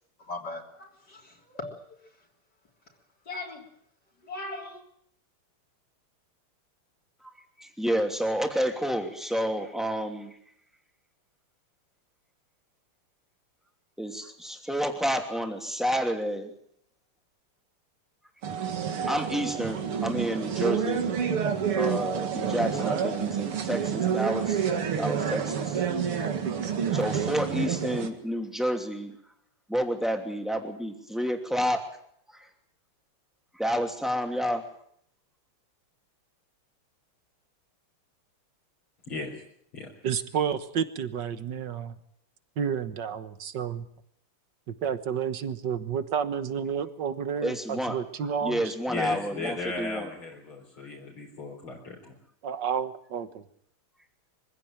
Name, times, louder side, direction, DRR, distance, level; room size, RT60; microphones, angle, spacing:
voice 1, 0.2-2.0 3.3-3.7 4.2-4.8, left 2 dB, 50° left, 0 dB, 3.9 m, -39 dB
voice 2, 7.6-10.4 14.0-16.5 19.1-21.1 21.8-24.6 25.0-25.8 26.9-29.1 29.7-31.9 32.3-32.5 33.6-34.6 47.4-48.0 48.4-50.1, equal, ahead, 3 dB, 2.7 m, -29 dB
sound 1, 18.4-28.1, right 7 dB, 80° right, 2.9 m, -28 dB
voice 3, 40.0-41.9 42.6-43.9 44.7-48.7 52.4-53.4, right 7 dB, 55° right, 11 dB, 1.8 m, -30 dB
voice 4, 48.9-52.1, left 3 dB, 70° left, -2 dB, 5.0 m, -36 dB
24.0 x 16.0 x 9.0 m, 0.68 s
omnidirectional pair, 2.4 m